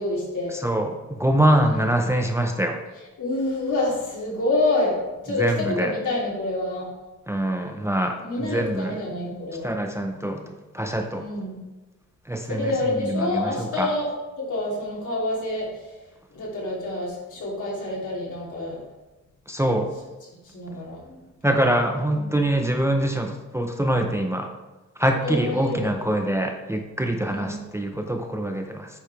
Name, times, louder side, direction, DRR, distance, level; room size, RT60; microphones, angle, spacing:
voice 1, 0.0-0.5 1.6-1.9 3.2-5.0 5.2-6.9 8.2-9.8 11.2-11.6 12.5-14.1 14.4-15.7 16.3-18.8 20.4-21.2 22.1-22.5 25.2-26.1 27.3-27.6, left 2 dB, 75° left, -4 dB, 2.8 m, -27 dB
voice 2, 0.5-2.8 5.3-5.9 7.3-9.0 9.6-11.2 12.3-13.9 19.5-19.9 21.4-24.5 25.0-28.9, right 1 dB, 10° right, 3 dB, 0.5 m, -24 dB
8.7 x 4.8 x 4.6 m, 1.1 s
wide cardioid pair, 175°, 30 cm